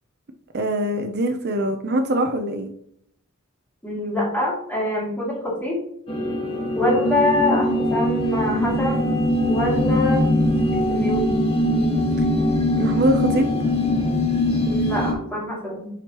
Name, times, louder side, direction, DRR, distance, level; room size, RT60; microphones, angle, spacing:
voice 1, 0.5-2.7 12.2-12.3 12.7-13.5, right 1 dB, 50° right, 5 dB, 0.6 m, -23 dB
voice 2, 3.8-5.8 6.7-9.0 9.4-10.2 10.9-11.3 14.6-15.9, left 2 dB, 10° left, -5 dB, 2.6 m, -24 dB
sound 1, 6.1-15.1, left 1 dB, 30° left, 1.4 m, -21 dB
9.9 x 4.5 x 3.0 m, 0.70 s
head